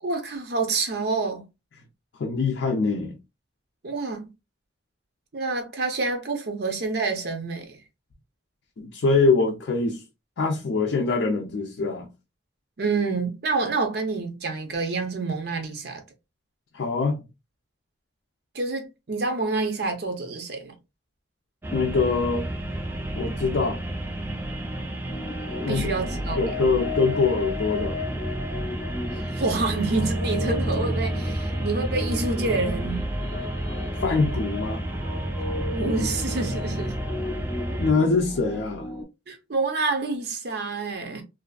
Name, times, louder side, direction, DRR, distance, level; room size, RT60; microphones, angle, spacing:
voice 1, 0.0-1.4 3.8-4.3 5.3-7.8 12.8-16.0 18.5-20.7 25.7-26.4 29.3-33.1 35.7-37.0 39.3-41.2, right 3 dB, 55° right, 0.6 m, -27 dB
voice 2, 2.2-3.2 8.8-10.0 10.4-12.1 16.7-17.2 21.7-22.5 23.1-23.8 25.6-25.9 26.3-28.0 34.0-34.8 37.8-38.9, left 4 dB, 70° left, 0.4 m, -23 dB
sound 1, 21.6-37.9, right 1 dB, 10° right, 0.3 m, -31 dB
sound 2, 25.1-39.0, left 2 dB, 30° left, 0.7 m, -35 dB
2.6 x 2.4 x 2.2 m
head